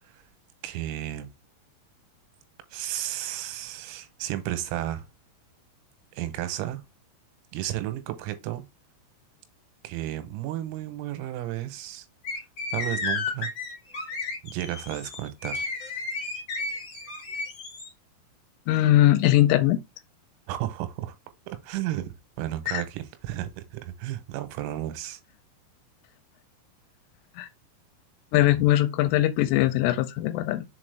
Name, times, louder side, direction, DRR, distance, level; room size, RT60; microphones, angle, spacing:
voice 1, 0.6-1.3 2.7-5.1 6.2-6.8 7.5-8.7 9.8-12.1 12.7-13.5 14.4-15.7 20.5-21.1 21.5-25.2, right 13 dB, 90° right, 3.7 m, -33 dB
sound 1, 12.2-17.9, left 3 dB, 40° left, 1.7 m, -33 dB
voice 2, 18.7-19.8 22.7-22.8 27.4-27.5 28.3-30.7, left 14 dB, 85° left, 3.0 m, -21 dB
7.0 x 4.2 x 3.4 m
omnidirectional pair, 6.0 m